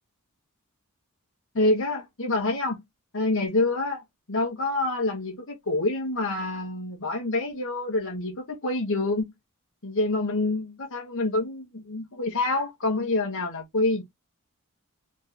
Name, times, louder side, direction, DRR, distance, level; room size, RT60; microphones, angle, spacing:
voice 1, 1.5-2.8 3.1-4.0 4.3-9.3 9.8-14.0, left 2 dB, 60° left, 1.4 m, -27 dB
3.7 x 3.2 x 3.8 m
head